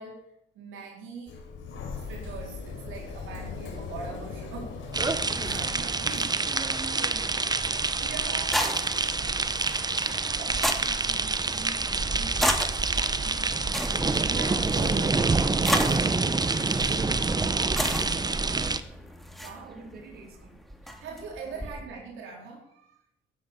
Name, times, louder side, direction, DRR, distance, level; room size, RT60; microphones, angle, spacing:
voice 1, 0.0-1.3 2.0-4.8 5.4-6.6 7.7-9.1 9.9-10.5 14.3-15.3 19.3-19.8 20.8-23.0, right 4 dB, 80° right, -2 dB, 4.4 m, -42 dB
Sliding door, 1.3-6.3, left 4 dB, 80° left, 4.8 m, -39 dB
sound 1, 4.9-18.8, right 3 dB, 20° right, 0.9 m, -27 dB
voice 2, 6.9-8.0 10.0-12.7 12.9-13.7 16.5-19.2 19.7-20.6 21.4-21.7, right 3 dB, 55° right, 2 dB, 4.9 m, -47 dB
sound 2, 7.6-21.8, equal, ahead, 2.5 m, -35 dB
15.0 x 10.0 x 7.1 m, 0.79 s
cardioid pair, 90°, 20 cm